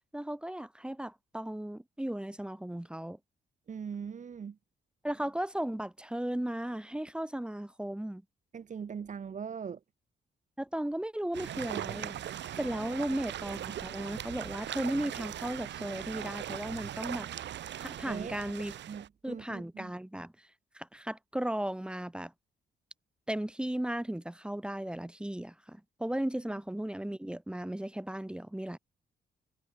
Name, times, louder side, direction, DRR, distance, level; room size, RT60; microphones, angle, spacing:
voice 1, 0.1-3.2 5.0-8.2 10.6-12.2 12.6-17.5 17.8-18.8 19.2-20.5 20.7-22.3 23.3-28.8, right 1 dB, 5° right, 2.0 m, -36 dB
voice 2, 3.7-4.6 8.5-9.8 12.8-12.9 18.1-18.4 18.9-19.9, right 7 dB, 40° right, 5.6 m, -40 dB
sound 1, 11.3-19.1, right 11 dB, 75° right, 6.7 m, -40 dB
cardioid pair, 140°, 18 cm